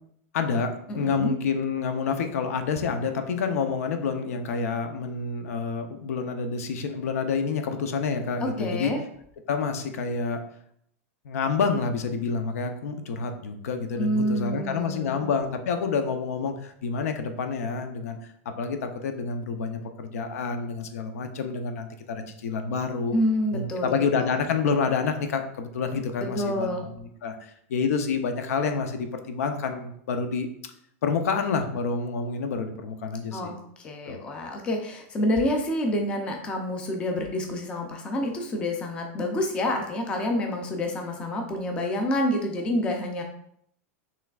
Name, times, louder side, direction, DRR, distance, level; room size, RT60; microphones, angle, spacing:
voice 1, 0.3-8.9 9.5-10.4 11.2-23.2 23.5-30.5 31.0-33.5 34.1-34.2, left 5 dB, 80° left, 6 dB, 0.6 m, -28 dB
voice 2, 0.9-1.3 8.4-9.0 14.0-15.3 23.1-24.3 26.3-26.9 33.3-43.2, left 1 dB, 15° left, 2 dB, 0.4 m, -28 dB
5.7 x 3.2 x 2.4 m, 0.69 s
supercardioid pair, 170°, 8 cm